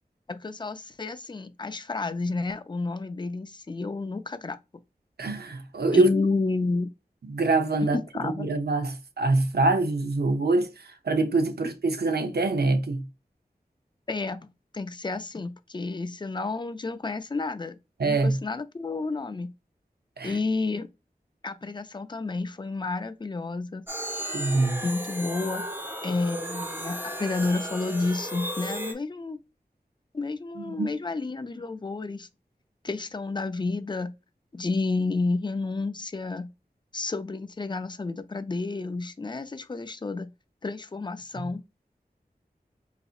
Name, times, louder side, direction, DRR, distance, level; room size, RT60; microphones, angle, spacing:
voice 1, 0.3-4.6 5.9-6.9 7.9-8.5 14.1-14.5 14.7-17.8 18.0-19.5 20.2-20.9 21.4-23.8 24.8-25.7 26.0-29.4 30.1-32.3 32.8-34.1 34.5-36.5 36.9-40.3 40.6-41.6, left 3 dB, 30° left, 0.4 m, -30 dB
voice 2, 5.2-6.1 7.3-8.0 8.2-13.0 18.0-18.4 20.2-20.4 24.3-24.8 30.7-30.9 41.4-41.5, right 2 dB, 85° right, 0.6 m, -24 dB
sound 1, 23.9-28.9, equal, 15° right, 0.7 m, -34 dB
4.1 x 2.7 x 2.4 m
wide cardioid pair, 55°, 16 cm